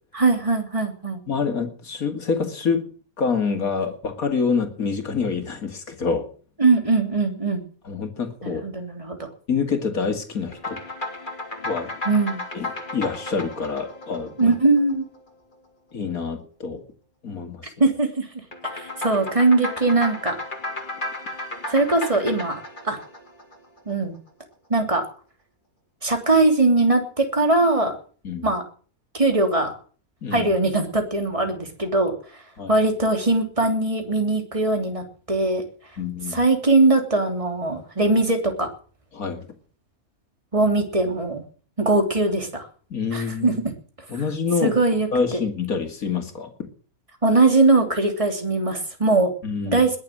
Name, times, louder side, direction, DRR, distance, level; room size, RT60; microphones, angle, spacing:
voice 1, 0.1-1.2 6.6-7.6 8.4-9.3 12.0-12.4 14.4-15.0 17.8-18.3 18.7-20.4 21.7-23.0 23.9-24.2 24.7-25.0 26.0-27.9 28.4-28.6 29.1-29.7 30.3-32.1 32.7-35.6 36.3-38.7 40.5-41.4 41.8-42.7 43.1-43.5 44.6-45.4 47.2-49.3 49.6-50.0, right 2 dB, 20° right, 4 dB, 3.2 m, -21 dB
voice 2, 1.3-2.9 3.2-6.3 7.8-8.6 9.5-10.8 11.6-11.9 12.5-14.5 15.9-16.8 17.2-17.7 28.2-28.5 30.2-30.5 32.6-32.8 36.0-36.4 39.1-39.5 42.9-43.6 44.1-44.7 45.1-46.5 49.4-49.8, left 5 dB, 80° left, 5 dB, 2.8 m, -26 dB
sound 1, 10.5-15.2 18.5-23.9, left 2 dB, 35° left, 3.1 m, -34 dB
20.5 x 7.6 x 7.6 m, 0.43 s
omnidirectional pair, 1.5 m